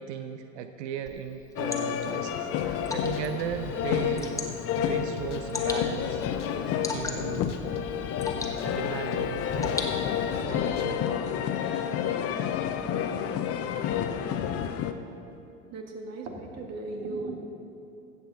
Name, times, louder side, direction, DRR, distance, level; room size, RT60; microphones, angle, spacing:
voice 1, 0.0-7.5 8.6-9.9 10.4-11.4, right 9 dB, 70° right, 8 dB, 0.7 m, -37 dB
Water / Drip, 1.1-10.4, left 3 dB, 10° left, 1.3 m, -40 dB
sound 1, 1.6-14.9, left 8 dB, 40° left, 0.8 m, -30 dB
sound 2, 2.6-11.2, left 4 dB, 90° left, 0.9 m, -43 dB
voice 2, 15.7-17.4, right 3 dB, 45° right, 3 dB, 1.8 m, -36 dB
15.0 x 8.1 x 4.0 m, 2.8 s
hypercardioid pair, 85°, 35 cm